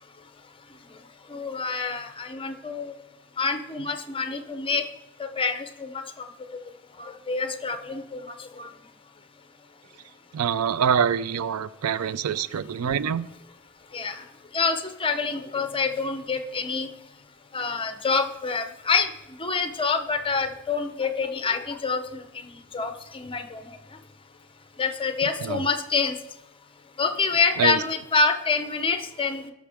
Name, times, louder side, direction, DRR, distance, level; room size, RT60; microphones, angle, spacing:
voice 1, 1.3-2.9 3.4-4.8 5.2-6.2 7.0-8.7 13.9-14.2 14.5-16.9 17.5-19.1 19.4-23.8 24.8-26.2 27.0-29.5, left 4 dB, 25° left, 7 dB, 0.8 m, -27 dB
voice 2, 10.3-13.3 25.4-25.6 27.6-27.8, right 7 dB, 90° right, 16 dB, 0.4 m, -25 dB
17.0 x 6.2 x 3.5 m, 0.89 s
head